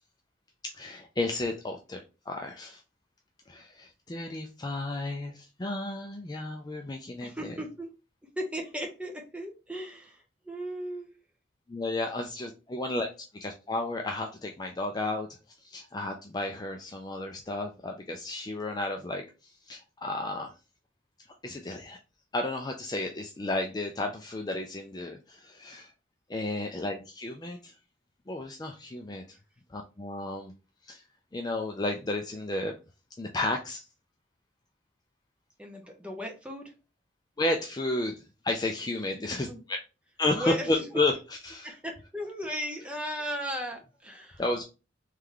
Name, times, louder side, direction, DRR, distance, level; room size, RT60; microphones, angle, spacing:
voice 1, 0.6-2.0 2.3-2.8 3.5-7.5 11.7-13.1 13.3-15.3 15.6-20.5 21.4-22.0 22.3-25.9 26.3-27.7 28.3-29.4 29.7-30.5 30.8-31.0 31.3-32.8 33.2-33.8 37.4-39.8 40.2-41.2 41.4-41.7 44.4-44.6, left 2 dB, 20° left, 3 dB, 0.4 m, -32 dB
voice 2, 7.2-7.9 8.4-11.1 35.6-36.7 39.5-39.6 40.3-40.9 41.6-44.6, equal, 5° right, 1 dB, 0.8 m, -36 dB
3.4 x 3.2 x 3.7 m, 0.30 s
head